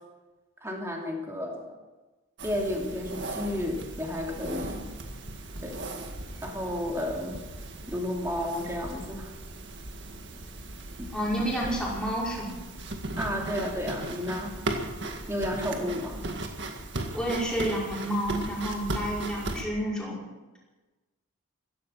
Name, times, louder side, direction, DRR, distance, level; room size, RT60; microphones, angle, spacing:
voice 1, 0.6-1.7 2.4-4.9 5.6-5.8 6.4-7.4 7.9-9.3 13.2-14.5 15.3-16.2, left 1 dB, 15° right, 0 dB, 2.9 m, -32 dB
sound 1, 2.4-19.6, right 2 dB, 55° right, 1.9 m, -37 dB
voice 2, 11.1-12.6 17.1-20.2, equal, 5° left, -6 dB, 5.3 m, -30 dB
15.5 x 15.0 x 5.9 m, 1.2 s
head